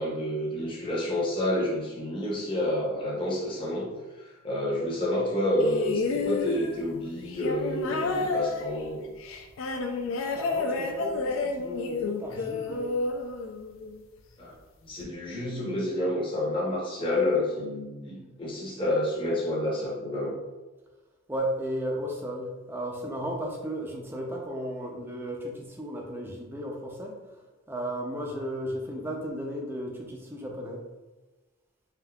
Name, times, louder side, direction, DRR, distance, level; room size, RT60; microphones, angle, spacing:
voice 1, 0.0-3.9 4.2-9.0 14.4-14.5 14.8-20.3, left 1 dB, 25° left, -6 dB, 0.7 m, -29 dB
sound 1, 5.6-14.0 15.0-15.1, left 3 dB, 65° left, 0.3 m, -31 dB
voice 2, 10.3-12.9 21.3-30.9, equal, 10° right, 0 dB, 0.4 m, -35 dB
3.5 x 2.6 x 2.2 m, 1.2 s
head